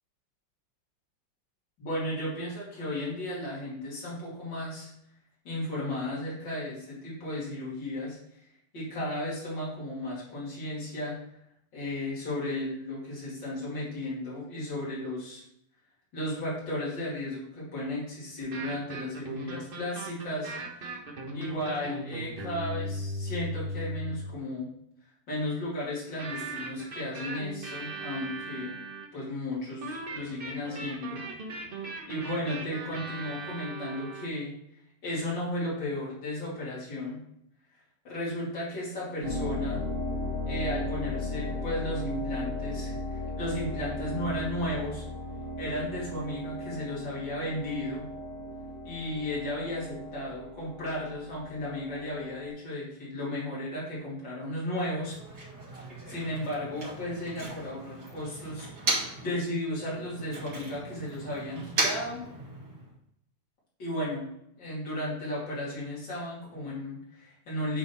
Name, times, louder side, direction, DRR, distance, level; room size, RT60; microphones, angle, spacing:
voice 1, 1.8-4.9 5.4-8.2 8.7-11.2 11.7-15.4 16.1-20.5 21.3-24.7 25.3-28.8 29.1-31.6 32.1-34.5 35.0-37.2 38.0-39.8 40.4-45.1 45.6-48.0 48.8-55.2 56.1-62.2 63.8-64.3 64.6-67.8, left 1 dB, 80° left, -7 dB, 3.2 m, -34 dB
sound 1, 18.4-24.2 26.2-29.2 29.8-34.3, right 1 dB, 35° right, 1.2 m, -38 dB
sound 2, 39.2-52.5, left 1 dB, 90° right, 3.1 m, -36 dB
Motor vehicle (road), 54.9-59.3 59.7-62.9, right 2 dB, 65° right, 3.0 m, -36 dB
9.1 x 4.1 x 4.2 m, 0.75 s
omnidirectional pair, 1.9 m